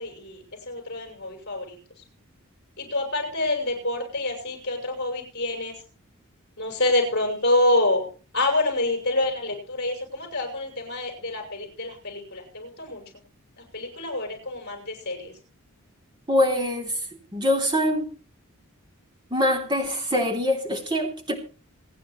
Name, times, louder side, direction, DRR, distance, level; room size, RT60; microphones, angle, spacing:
voice 1, 0.0-1.8 2.8-5.7 6.6-8.1 8.3-13.0 13.6-15.3, left 2 dB, 50° left, 6.4 m, -27 dB
voice 2, 16.3-16.9 17.3-18.1 19.3-21.3, left 1 dB, 20° right, 3.3 m, -24 dB
27.0 x 10.0 x 3.2 m
head